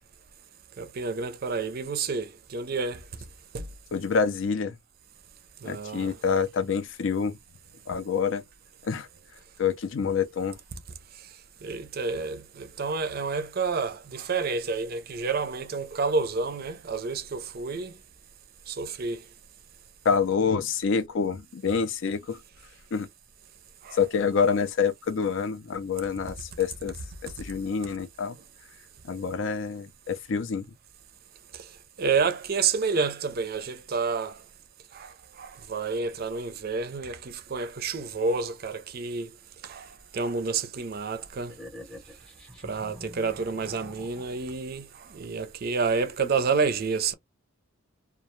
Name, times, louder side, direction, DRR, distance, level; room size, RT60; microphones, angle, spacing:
voice 1, 0.8-3.0 3.5-3.6 5.6-6.1 11.6-17.9 18.7-19.2 23.8-24.0 32.0-34.4 34.9-35.1 35.4-39.3 39.6-39.9 40.1-41.5 42.6-47.1, right 4 dB, 45° right, 0.4 m, -29 dB
voice 2, 3.9-4.8 5.7-7.4 7.9-8.4 8.8-9.1 9.6-10.6 20.1-22.4 22.9-23.1 23.9-26.9 27.2-28.4 29.1-30.7, left 6 dB, 65° left, 0.4 m, -27 dB
sound 1, 41.5-44.6, left 1 dB, 5° left, 0.7 m, -46 dB
2.3 x 2.1 x 2.9 m
head